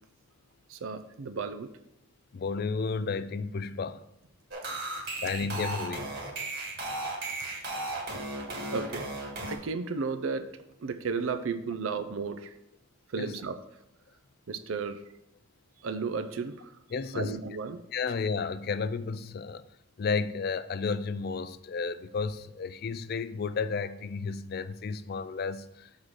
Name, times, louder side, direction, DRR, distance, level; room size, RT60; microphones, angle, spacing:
voice 1, 0.7-1.7 8.7-9.1 9.5-10.5 10.8-12.5 13.1-13.6 14.5-15.0 15.8-16.7 17.1-17.8, right 4 dB, 80° right, 0.5 m, -33 dB
voice 2, 2.3-4.0 5.2-6.1 13.2-13.4 16.9-17.4 17.9-19.7 20.0-25.9, left 5 dB, 50° left, 0.3 m, -32 dB
sound 1, 4.5-9.6, right 2 dB, 55° right, 1.5 m, -35 dB
6.4 x 3.7 x 6.0 m
head